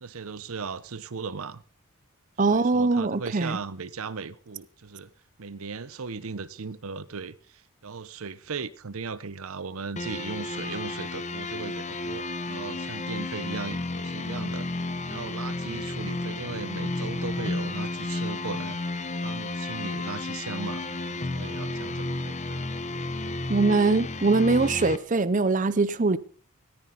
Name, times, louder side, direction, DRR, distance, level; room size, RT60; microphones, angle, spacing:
voice 1, 0.0-1.6 2.5-5.1 5.4-14.7 15.1-18.8 19.2-22.7, right 5 dB, 75° right, 0.8 m, -37 dB
voice 2, 2.4-3.6 23.5-26.2, right 3 dB, 35° right, 0.6 m, -22 dB
sound 1, 10.0-25.0, left 2 dB, 30° left, 1.0 m, -32 dB
19.0 x 14.5 x 4.0 m
head